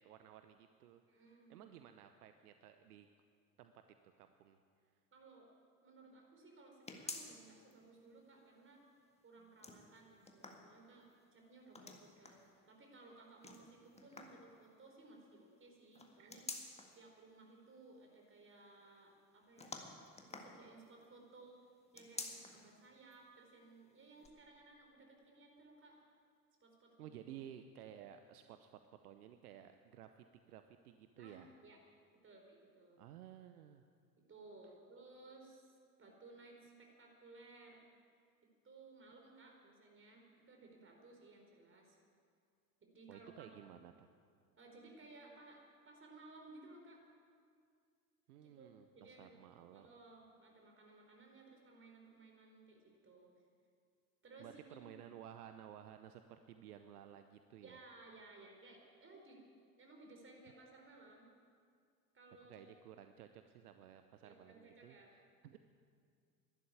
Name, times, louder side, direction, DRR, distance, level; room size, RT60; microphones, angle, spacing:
voice 1, 0.0-3.1 3.6-4.6 16.2-16.3 27.0-31.5 33.0-33.9 43.1-44.1 48.3-49.9 54.4-57.8 62.5-65.6, right 10 dB, 70° right, 9 dB, 0.9 m, -55 dB
voice 2, 1.1-1.7 5.1-5.5 5.8-8.8 9.2-16.5 16.9-20.0 20.3-21.6 21.9-26.0 26.6-27.1 31.2-31.8 32.2-33.0 34.2-37.8 38.6-42.0 42.8-43.6 44.6-47.0 48.4-49.3 49.7-53.3 54.2-54.9 57.6-59.4 59.8-61.3 62.1-62.7 64.2-65.1, right 3 dB, 25° right, 1 dB, 4.5 m, -59 dB
sound 1, 6.9-7.7 8.1-8.2 9.4-11.1 11.7-12.5 13.4-14.5 15.9-17.0 19.6-21.0 21.9-22.7 23.1-23.2 24.2-24.3, left 3 dB, 15° left, 1.8 m, -50 dB
12.0 x 11.5 x 9.8 m, 2.2 s
figure-of-eight pair, 70°, 47 cm